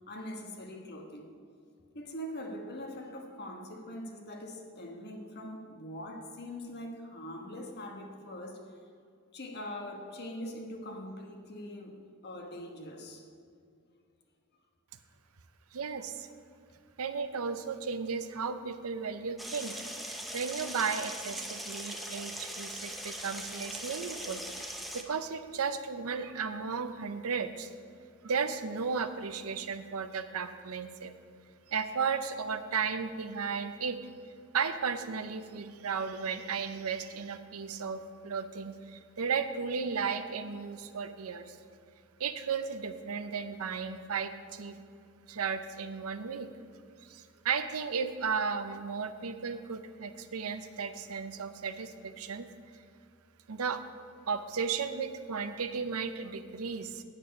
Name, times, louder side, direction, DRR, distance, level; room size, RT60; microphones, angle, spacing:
voice 1, 0.1-1.3 1.9-8.8 9.3-13.3, left 1 dB, 50° left, 3 dB, 1.3 m, -42 dB
voice 2, 15.7-16.3 17.0-24.4 24.9-27.7 28.2-31.1 31.7-34.0 34.5-41.6 42.2-44.8 45.3-46.5 47.0-52.5 53.5-53.8 54.3-57.0, right 5 dB, 80° right, 10 dB, 0.6 m, -34 dB
sound 1, 19.4-25.0, equal, ahead, 0.7 m, -40 dB
9.2 x 8.6 x 5.2 m, 2.3 s
head